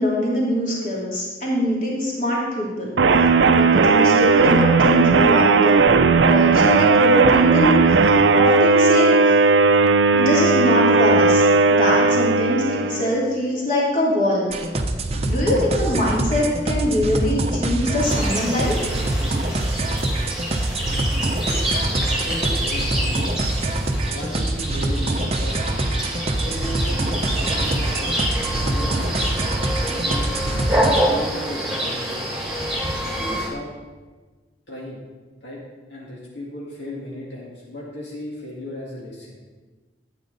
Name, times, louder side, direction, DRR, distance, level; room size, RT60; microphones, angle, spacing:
voice 1, 0.0-3.0 3.5-5.9 6.2-9.3 10.1-14.5 15.3-18.8, left 1 dB, 45° left, -5 dB, 2.9 m, -23 dB
sound 1, 3.0-13.2, right 4 dB, 80° right, 0.5 m, -16 dB
sound 2, 14.5-31.0, right 1 dB, 35° right, 0.7 m, -24 dB
sound 3, 18.0-33.5, right 1 dB, 5° right, 1.7 m, -27 dB
voice 2, 21.5-23.4 24.1-25.9 26.4-28.2 28.5-29.4 29.7-30.4 31.0-32.3 33.2-33.7 34.7-35.0 35.4-35.6 35.9-39.4, left 1 dB, 75° left, -5 dB, 2.1 m, -35 dB
12.5 x 8.7 x 4.0 m, 1.3 s
head